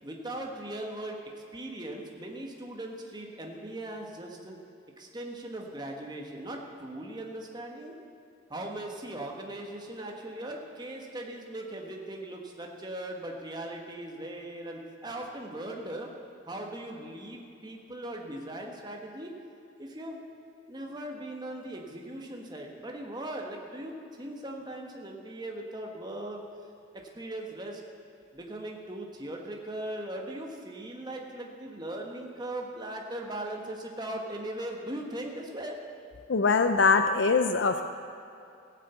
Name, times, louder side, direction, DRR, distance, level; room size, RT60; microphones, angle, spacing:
voice 1, 0.0-4.6 5.0-8.0 8.5-16.1 16.5-19.3 19.8-20.2 20.7-23.9 24.2-26.4 26.9-27.8 28.3-35.8, right 1 dB, 20° right, 1 dB, 1.4 m, -39 dB
voice 2, 36.3-37.8, left 4 dB, 65° left, 8 dB, 0.5 m, -23 dB
16.5 x 7.6 x 8.1 m, 2.6 s
head